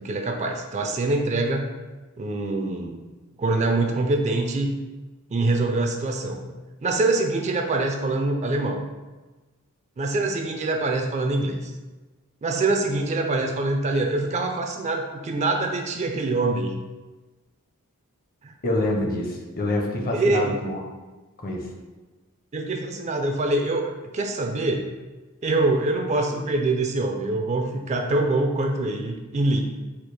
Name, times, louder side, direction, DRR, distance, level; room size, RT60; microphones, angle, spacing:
voice 1, 0.0-1.7 2.2-3.0 3.4-4.8 5.3-6.4 6.8-8.8 10.0-11.7 12.4-16.8 18.4-18.5 20.1-20.6 22.5-24.9 25.4-29.6, right 2 dB, 30° right, 4 dB, 0.3 m, -24 dB
voice 2, 18.6-20.8 21.4-21.7, left 1 dB, 40° left, 1 dB, 0.6 m, -26 dB
4.3 x 2.4 x 4.8 m, 1.2 s
head